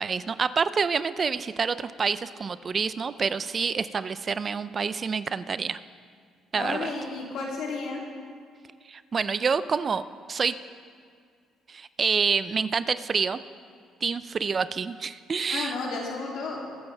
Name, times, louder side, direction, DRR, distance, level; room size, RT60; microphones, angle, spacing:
voice 1, 0.0-5.8 6.5-6.9 8.8-10.0 10.3-10.6 11.7-13.4 14.0-15.8, right 5 dB, 35° right, 14 dB, 0.4 m, -27 dB
voice 2, 6.5-8.0 15.5-16.6, left 3 dB, 75° left, -2 dB, 2.8 m, -32 dB
22.0 x 8.9 x 3.4 m, 2.1 s
cardioid pair, 100°, 0 cm